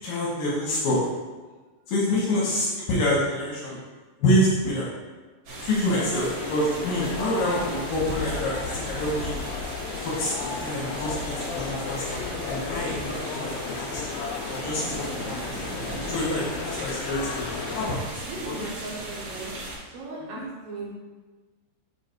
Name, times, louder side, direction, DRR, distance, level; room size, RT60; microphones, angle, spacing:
voice 1, 0.0-1.1 1.9-3.8 4.2-4.9 5.6-9.3 10.0-13.5 13.8-14.0 14.5-15.4 16.1-18.0 18.4-18.7 20.2-20.5, left 1 dB, 75° left, -7 dB, 2.1 m, -27 dB
voice 2, 2.1-2.5 5.9-6.3 17.6-17.8 18.2-19.5 19.9-20.9, right 2 dB, 85° right, -6 dB, 2.0 m, -38 dB
sound 1, 5.5-19.8, right 2 dB, 60° right, 3.1 m, -37 dB
sound 2, 6.2-18.0, left 5 dB, 90° left, 3.1 m, -34 dB
7.5 x 2.8 x 4.6 m, 1.3 s
omnidirectional pair, 5.7 m